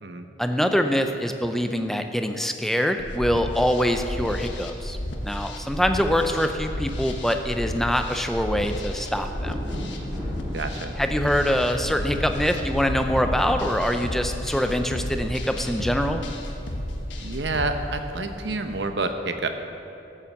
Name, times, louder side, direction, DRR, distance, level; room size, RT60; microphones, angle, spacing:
voice 1, 0.4-5.0 5.2-9.6 11.0-16.2, equal, ahead, 6 dB, 0.5 m, -24 dB
sound 1, 3.0-17.7, left 1 dB, 85° left, 1.4 m, -32 dB
sound 2, 3.4-18.8, equal, 15° right, 3.6 m, -39 dB
voice 2, 10.5-10.9 17.2-19.5, right 3 dB, 75° right, 7 dB, 0.9 m, -28 dB
13.5 x 7.4 x 7.2 m, 2.8 s
head